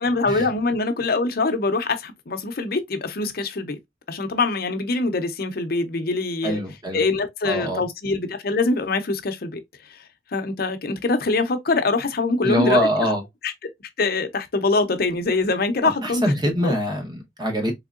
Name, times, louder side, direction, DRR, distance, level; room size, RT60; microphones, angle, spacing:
voice 1, 0.0-3.8 4.1-6.6 6.9-9.6 9.9-10.0 10.3-12.9 13.4-13.5 14.0-16.7, left 3 dB, 55° left, 0.6 m, -24 dB
voice 2, 6.4-7.0 7.4-7.8 12.4-13.2 15.8-17.7, equal, 25° right, 0.9 m, -23 dB
3.6 x 3.3 x 2.4 m
head